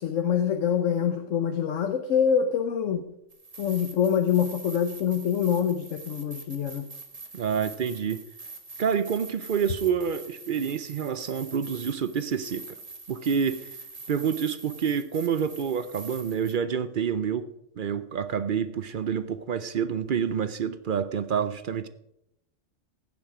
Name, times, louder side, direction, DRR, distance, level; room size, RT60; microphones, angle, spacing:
voice 1, 0.0-3.1 3.6-6.9, left 8 dB, 90° left, 7 dB, 1.2 m, -25 dB
sound 1, 3.3-16.5, right 3 dB, 30° right, 1.2 m, -44 dB
voice 2, 7.3-8.2 8.8-12.6 13.1-13.7 14.1-21.9, right 7 dB, 55° right, 13 dB, 0.6 m, -28 dB
15.5 x 7.2 x 4.9 m, 0.82 s
omnidirectional pair, 1.3 m